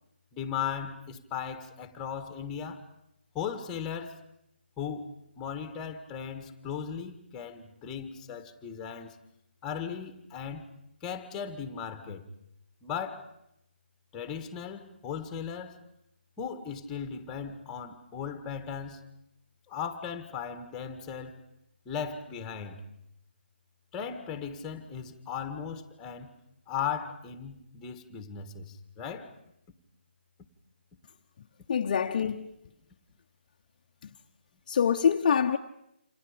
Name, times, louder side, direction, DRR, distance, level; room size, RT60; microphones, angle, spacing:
voice 1, 0.3-2.9 3.3-4.2 4.8-9.2 9.6-10.7 11.0-12.3 12.8-13.3 14.1-15.8 16.4-19.0 19.7-21.4 21.8-22.8 23.9-26.3 26.7-29.3, left 7 dB, 10° left, 1.7 m, -37 dB
voice 2, 31.7-32.5 34.0-34.1 34.7-35.6, left 7 dB, 40° left, 1.0 m, -25 dB
28.5 x 27.5 x 5.2 m
hypercardioid pair, 160°, 6 cm